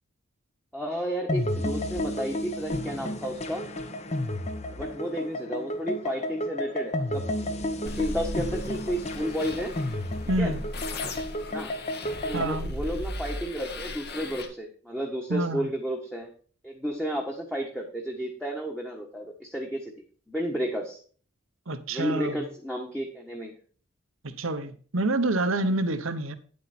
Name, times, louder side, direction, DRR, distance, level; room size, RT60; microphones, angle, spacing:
voice 1, 0.7-3.7 4.7-7.2 7.8-9.7 10.4-10.5 11.5-11.7 12.2-16.3 16.6-19.9 20.3-21.0 21.9-23.5, equal, 5° left, 1.4 m, -32 dB
sound 1, 1.3-12.6, left 1 dB, 30° left, 1.0 m, -32 dB
sound 2, 7.9-14.5, left 1 dB, 50° left, 1.7 m, -37 dB
voice 2, 10.3-10.6 12.3-12.7 15.3-15.7 21.7-22.4 24.2-26.3, right 2 dB, 75° right, 1.1 m, -27 dB
9.8 x 8.4 x 4.3 m
head